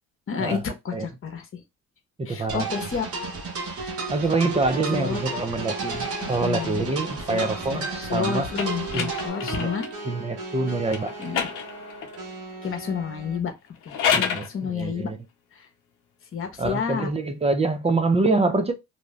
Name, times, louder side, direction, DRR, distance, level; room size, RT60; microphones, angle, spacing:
voice 1, 0.3-0.6 0.8-1.6 2.3-3.1 4.9-5.2 6.2-6.9 7.3-9.9 11.2-11.5 12.6-13.5 13.8-15.1 15.5-15.7 16.3-17.1, left 6 dB, 45° left, 1.0 m, -30 dB
voice 2, 2.2-2.7 4.1-8.5 8.9-9.1 9.4-9.7 10.0-11.1 14.1-15.2 16.6-18.7, right 3 dB, 20° right, 0.6 m, -25 dB
sound 1, 2.5-9.3, right 3 dB, 50° right, 1.0 m, -33 dB
sound 2, 3.8-13.4, right 3 dB, 90° right, 1.1 m, -38 dB
sound 3, 6.0-10.0 10.9-12.3 13.7-14.5, left 7 dB, 85° left, 0.6 m, -31 dB
2.7 x 2.3 x 3.1 m
cardioid pair, 90°, 30 cm